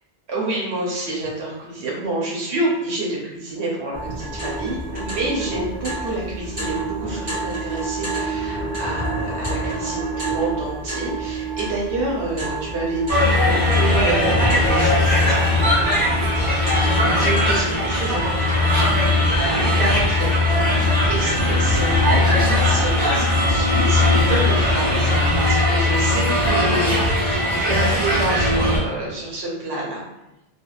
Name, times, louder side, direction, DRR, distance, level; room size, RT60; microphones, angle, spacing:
voice 1, 0.3-15.5 16.9-18.9 19.2-30.0, right 2 dB, 85° right, -3 dB, 0.9 m, -28 dB
sound 1, 3.9-23.0, right 2 dB, 70° right, 1.6 m, -30 dB
sound 2, 13.1-28.8, left 1 dB, 40° right, 1.0 m, -19 dB
3.4 x 2.0 x 2.3 m, 0.95 s
omnidirectional pair, 1.0 m